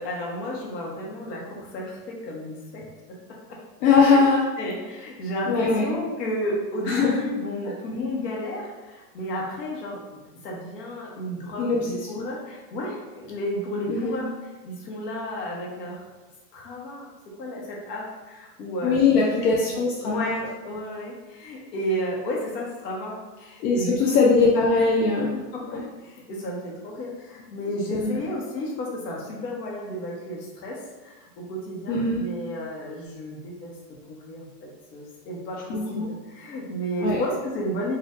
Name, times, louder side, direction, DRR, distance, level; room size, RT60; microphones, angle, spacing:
voice 1, 0.0-3.2 3.5-3.6 4.0-4.3 4.6-10.2 10.4-14.3 14.6-16.1 16.5-17.1 17.4-19.0 19.4-19.6 20.0-24.4 25.5-33.7 34.1-38.0, equal, 80° left, -3 dB, 1.3 m, -32 dB
voice 2, 3.8-4.5 5.5-5.9 6.9-7.2 11.6-12.3 13.9-14.2 18.8-20.3 23.6-25.3 25.7-25.8 27.9-28.2 31.9-32.3 35.7-36.1 37.0-37.2, left 4 dB, 65° left, -3 dB, 0.7 m, -21 dB
4.2 x 2.6 x 2.6 m, 1.2 s
supercardioid pair, 160°, 49 cm